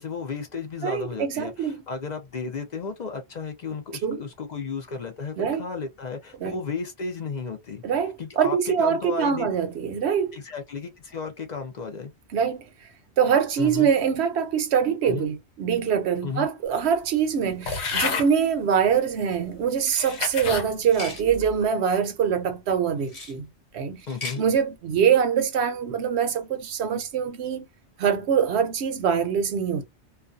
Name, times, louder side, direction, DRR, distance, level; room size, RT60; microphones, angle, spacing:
voice 1, 0.0-7.8 8.2-9.5 10.3-12.1 13.6-13.9 15.0-15.3 16.2-16.5 24.1-24.4, left 4 dB, 50° left, 0.5 m, -33 dB
voice 2, 0.8-1.8 4.0-4.2 5.4-5.7 6.4-6.6 7.8-10.4 12.3-12.7 13.2-23.5 23.7-24.0 24.4-27.7 28.0-29.8, right 7 dB, 70° right, 0.8 m, -24 dB
sound 1, 17.6-18.3 19.1-19.2 19.9-20.7 21.2-21.6, left 4 dB, 70° left, 1.0 m, -29 dB
sound 2, 19.8-20.2 20.8-21.2 23.0-23.4 24.0-24.4, left 2 dB, 35° left, 1.0 m, -38 dB
2.3 x 2.2 x 2.5 m
omnidirectional pair, 1.2 m